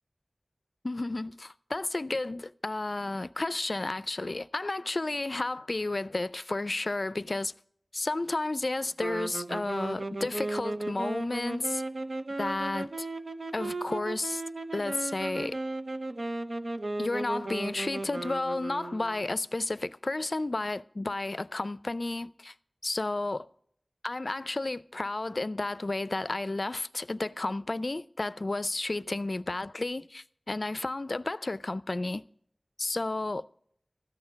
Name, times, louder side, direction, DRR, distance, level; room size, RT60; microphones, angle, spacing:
voice 1, 0.8-7.5 7.9-11.8 12.4-13.1 13.5-14.4 14.7-15.6 17.0-22.5 22.8-23.5 24.0-32.2 32.8-33.5, left 2 dB, 65° left, 0.4 m, -32 dB
sound 1, 9.0-19.4, right 2 dB, 85° right, 0.8 m, -35 dB
14.0 x 9.5 x 5.1 m
wide cardioid pair, 40°, 0 cm